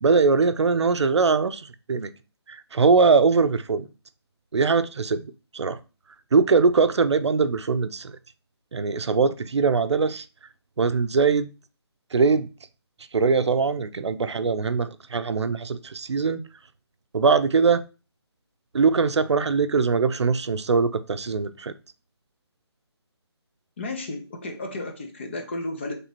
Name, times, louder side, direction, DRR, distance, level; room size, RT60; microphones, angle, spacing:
voice 1, 0.0-2.1 2.5-3.9 4.5-5.3 5.5-5.8 6.3-8.1 8.7-10.2 10.8-11.5 12.1-12.5 13.1-16.4 17.1-17.8 18.7-21.7, right 4 dB, 85° right, 0.5 m, -21 dB
voice 2, 23.8-25.9, left 2 dB, 25° left, 0.5 m, -33 dB
3.3 x 3.0 x 4.1 m
figure-of-eight pair, 165°, 14 cm